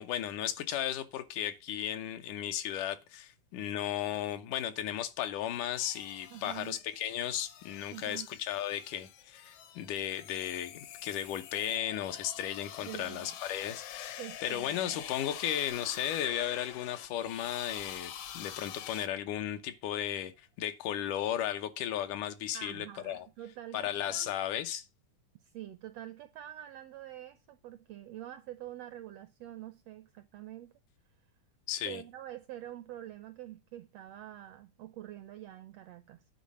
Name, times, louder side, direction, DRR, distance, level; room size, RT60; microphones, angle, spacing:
voice 1, 0.0-20.3 20.6-23.3 23.7-24.8 31.7-32.0, left 11 dB, 85° left, 2.4 m, -35 dB
sound 1, 5.7-19.1, left 10 dB, 70° left, 1.8 m, -47 dB
voice 2, 6.3-6.8 7.9-8.3 12.8-13.3 14.2-15.0 22.5-24.3 25.4-30.7 31.8-36.2, right 13 dB, 80° right, 1.4 m, -46 dB
sound 2, 8.9-21.3 21.8-21.9, left 9 dB, 50° left, 0.4 m, -59 dB
9.5 x 4.1 x 7.3 m
omnidirectional pair, 3.5 m